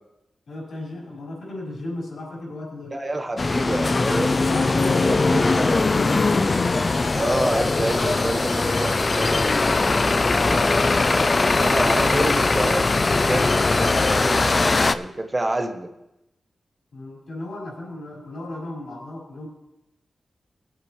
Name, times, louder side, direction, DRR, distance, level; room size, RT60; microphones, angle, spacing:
voice 1, 0.5-3.0 4.5-7.0 10.3-10.7 16.9-19.5, left 1 dB, 70° left, -3 dB, 4.3 m, -35 dB
voice 2, 2.9-4.7 5.1-5.2 5.6-5.8 7.2-9.5 11.5-15.9, right 1 dB, 20° right, 6 dB, 0.6 m, -28 dB
sound 1, 3.4-14.9, left 3 dB, 30° left, 0.3 m, -20 dB
19.5 x 8.2 x 3.0 m, 0.90 s
wide cardioid pair, 170°, 0 cm